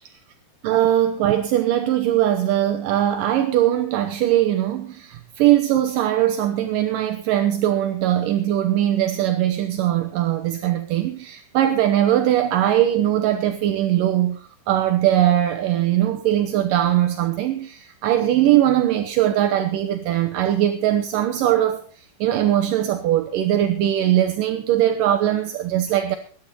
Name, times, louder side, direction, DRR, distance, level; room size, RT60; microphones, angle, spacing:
voice 1, 0.6-26.2, right 12 dB, 70° right, 6 dB, 2.2 m, -20 dB
21.5 x 10.0 x 4.2 m, 0.44 s
omnidirectional pair, 4.8 m